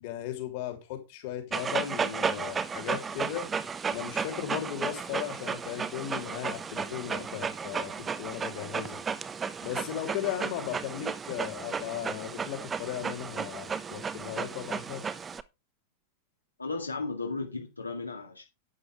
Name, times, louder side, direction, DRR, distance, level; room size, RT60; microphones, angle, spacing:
voice 1, 0.0-3.5 3.9-9.0 9.6-15.1, left 11 dB, 50° left, 3.3 m, -36 dB
Dog, 1.5-15.4, right 6 dB, 20° right, 0.8 m, -34 dB
voice 2, 16.6-18.4, left 3 dB, 80° left, 2.1 m, -35 dB
11.0 x 9.2 x 3.5 m
figure-of-eight pair, 90°, 0 cm